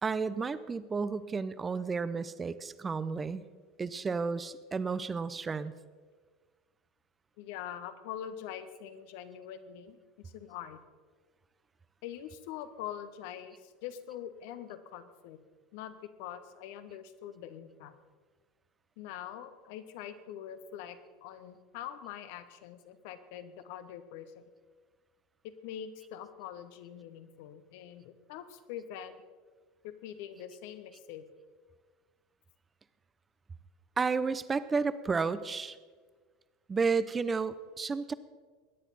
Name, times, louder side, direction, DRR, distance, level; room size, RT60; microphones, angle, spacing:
voice 1, 0.0-3.4 3.8-5.7 34.0-35.8 36.7-38.1, right 5 dB, 20° right, 15 dB, 0.7 m, -32 dB
voice 2, 7.4-10.8 12.0-15.4 15.7-17.9 19.0-24.4 25.4-29.2 29.8-31.3, left 10 dB, 60° left, 11 dB, 1.0 m, -44 dB
21.5 x 10.0 x 4.1 m, 1.5 s
figure-of-eight pair, 75°, 0 cm